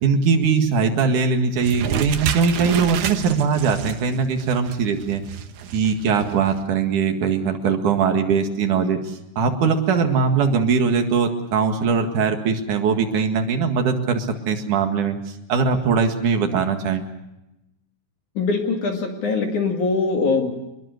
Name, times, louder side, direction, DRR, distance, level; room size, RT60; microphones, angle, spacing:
voice 1, 0.0-5.2 5.7-15.2 15.5-17.0, right 5 dB, 55° right, 5 dB, 2.8 m, -21 dB
sound 1, 1.6-6.6, right 8 dB, 85° right, 1.7 m, -30 dB
voice 2, 18.3-20.5, left 4 dB, 50° left, 3 dB, 3.1 m, -22 dB
25.0 x 22.5 x 6.6 m, 0.91 s
omnidirectional pair, 5.4 m